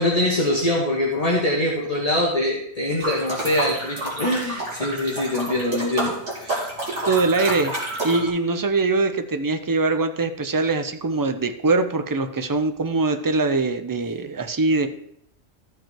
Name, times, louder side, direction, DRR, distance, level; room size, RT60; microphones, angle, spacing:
voice 1, 0.0-6.7, left 1 dB, 30° left, -3 dB, 1.4 m, -23 dB
sound 1, 3.0-8.3, right 1 dB, 75° right, 2.8 m, -29 dB
voice 2, 7.1-7.7 8.0-14.9, right 3 dB, 35° right, 8 dB, 0.3 m, -22 dB
13.5 x 5.3 x 4.5 m, 0.74 s
omnidirectional pair, 1.2 m